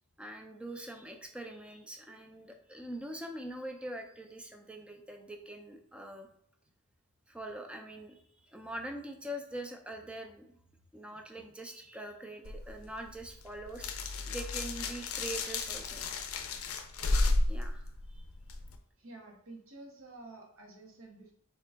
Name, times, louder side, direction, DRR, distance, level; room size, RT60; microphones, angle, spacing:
voice 1, 0.2-6.3 7.3-10.5 10.9-13.9 14.3-16.0 17.1-17.8 18.1-18.2, right 1 dB, 5° right, 4 dB, 0.4 m, -43 dB
sound 1, 12.4-18.8, left 2 dB, 85° left, 0.5 m, -33 dB
voice 2, 19.0-21.3, right 2 dB, 75° right, 0 dB, 1.0 m, -50 dB
3.5 x 2.8 x 3.4 m, 0.67 s
head